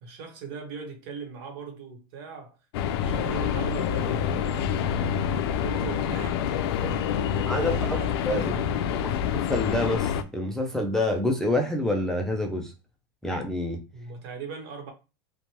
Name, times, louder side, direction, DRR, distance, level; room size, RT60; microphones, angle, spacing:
voice 1, 0.0-2.6 3.0-4.9 5.4-6.4 6.6-9.1 13.9-14.9, right 5 dB, 65° right, 1.0 m, -40 dB
sound 1, 2.7-10.2, left 8 dB, 80° left, 0.4 m, -27 dB
voice 2, 7.5-8.0 8.3-8.5 9.0-9.1 9.5-12.7 13.2-13.8, left 1 dB, 5° left, 0.3 m, -27 dB
2.9 x 2.1 x 2.8 m
supercardioid pair, 140°, 13 cm